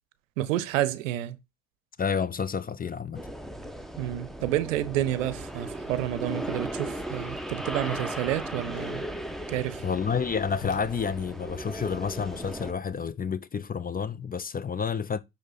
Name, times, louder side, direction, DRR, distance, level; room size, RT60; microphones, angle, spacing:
voice 1, 0.4-1.4 4.0-9.0 9.5-9.9, right 13 dB, 75° right, 0.7 m, -29 dB
voice 2, 2.0-3.2 9.8-15.2, left 6 dB, 25° left, 0.6 m, -30 dB
sound 1, 3.1-12.7, right 1 dB, ahead, 1.0 m, -37 dB
Whoosh swoosh swish, 4.7-12.4, left 11 dB, 40° left, 1.4 m, -52 dB
9.9 x 3.4 x 4.0 m
figure-of-eight pair, 50°, 39 cm